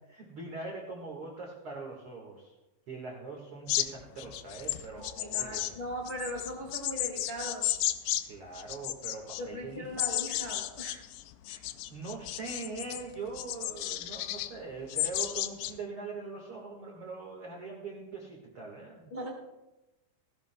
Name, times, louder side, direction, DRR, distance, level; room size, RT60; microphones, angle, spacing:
voice 1, 0.1-2.5 2.9-5.7 8.3-9.9 11.5-11.6 11.9-19.1, right 4 dB, 80° right, -2 dB, 1.2 m, -42 dB
sound 1, 3.7-8.2 8.5-9.4 10.0-13.0 13.4-14.5 14.9-15.7, left 15 dB, 90° left, 3.0 m, -33 dB
voice 2, 5.2-7.8 9.4-11.1 19.1-19.3, equal, 60° left, -3 dB, 0.7 m, -39 dB
17.0 x 16.5 x 2.2 m, 1.0 s
omnidirectional pair, 5.3 m